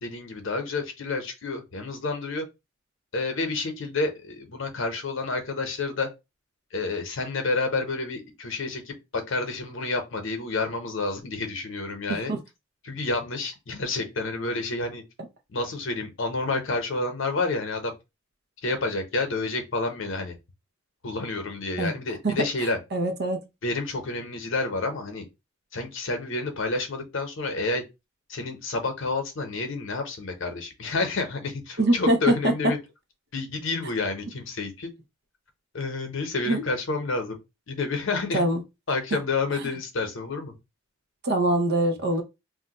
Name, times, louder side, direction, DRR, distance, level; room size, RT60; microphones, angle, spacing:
voice 1, 0.0-2.5 3.1-6.1 6.7-12.3 12.8-15.0 15.5-18.0 18.6-20.4 21.0-22.8 23.6-25.3 25.7-27.8 28.3-32.8 33.3-34.9 35.7-37.4 37.7-38.5 38.9-40.6, left 3 dB, 70° left, 0.8 m, -29 dB
voice 2, 22.9-23.4 31.8-32.5 36.5-36.6 38.3-38.6 41.2-42.2, right 1 dB, 55° right, 0.6 m, -23 dB
2.5 x 2.2 x 3.9 m
head